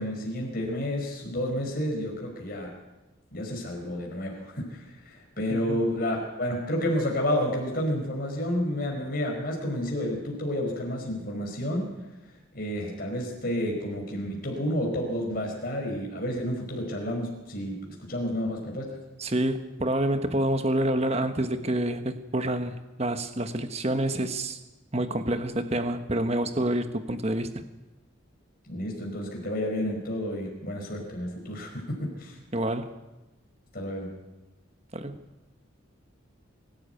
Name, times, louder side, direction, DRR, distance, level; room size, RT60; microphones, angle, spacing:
voice 1, 0.0-2.7 3.3-11.9 12.5-19.0 28.6-32.4 33.7-34.1, equal, 45° left, 0 dB, 4.9 m, -30 dB
voice 2, 5.5-5.8 19.2-24.6 24.9-27.6 32.5-33.0 34.9-35.1, right 1 dB, 30° right, 8 dB, 1.2 m, -28 dB
24.0 x 12.0 x 9.2 m, 1.1 s
head